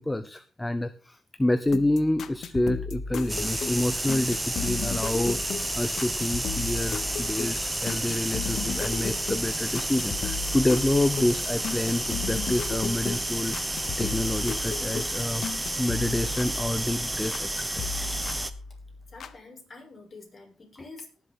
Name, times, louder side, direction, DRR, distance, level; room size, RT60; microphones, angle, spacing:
voice 1, 0.0-13.6 14.0-15.4 15.8-18.1, left 1 dB, 10° left, 12 dB, 0.8 m, -28 dB
sound 1, 1.7-17.5 17.8-19.3, left 6 dB, 60° left, 1.1 m, -36 dB
sound 2, 3.3-18.5, right 1 dB, 10° right, 1.1 m, -31 dB
voice 2, 19.1-21.2, left 3 dB, 30° left, 0 dB, 6.0 m, -47 dB
18.5 x 7.7 x 3.8 m, 0.35 s
cardioid pair, 90°, 0 cm